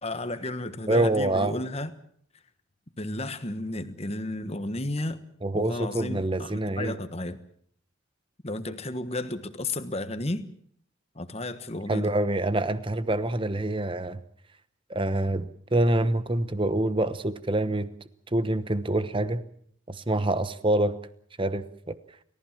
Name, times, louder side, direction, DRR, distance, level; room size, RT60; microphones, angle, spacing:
voice 1, 0.0-1.9 3.0-5.2 5.5-7.4 8.4-10.5 11.1-12.1, left 2 dB, 30° left, 1.4 m, -33 dB
voice 2, 0.9-1.5 5.4-7.0 11.9-14.2 14.9-17.9 18.3-19.4 19.9-21.0 21.4-22.0, right 1 dB, 25° right, 1.0 m, -26 dB
29.5 x 15.0 x 7.4 m
head